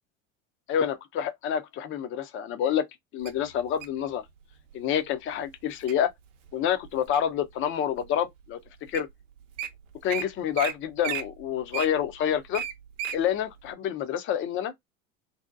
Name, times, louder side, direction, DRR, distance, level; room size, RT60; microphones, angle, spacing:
voice 1, 0.7-2.8 3.1-4.2 4.7-6.1 6.5-8.6 8.9-9.1 10.0-12.6 13.1-14.7, left 9 dB, 30° left, 0.5 m, -28 dB
Wild animals, 3.3-4.0 4.7-5.0 5.5-5.9 6.5-7.4 8.0-8.1 8.7-8.8 8.9-9.1 9.4-9.7 10.1-10.2 10.5-10.7 11.0-13.2 13.6-13.7, right 9 dB, 65° right, 0.7 m, -34 dB
2.7 x 2.0 x 2.4 m
figure-of-eight pair, 75°, 40 cm